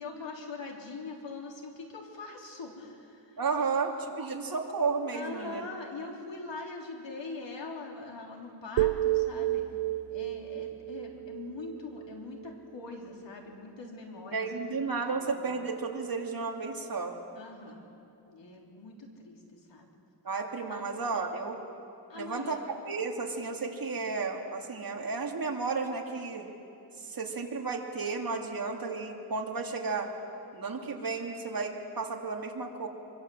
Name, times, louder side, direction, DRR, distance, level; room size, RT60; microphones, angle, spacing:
voice 1, 0.0-3.7 5.1-9.6 10.1-14.5 15.1-15.2 15.4-15.6 17.3-17.8 18.3-19.9 20.7-21.3 22.1-22.6, left 3 dB, 75° left, 0 dB, 3.8 m, -43 dB
voice 2, 3.4-5.7 14.3-17.2 20.2-21.6 22.1-22.6 22.8-26.5 27.0-30.1 30.5-32.9, right 4 dB, 50° right, 1 dB, 2.7 m, -33 dB
sound 1, 8.8-12.9, right 15 dB, 90° right, 0.5 m, -32 dB
24.5 x 23.0 x 8.0 m, 2.6 s
wide cardioid pair, 125°, 44 cm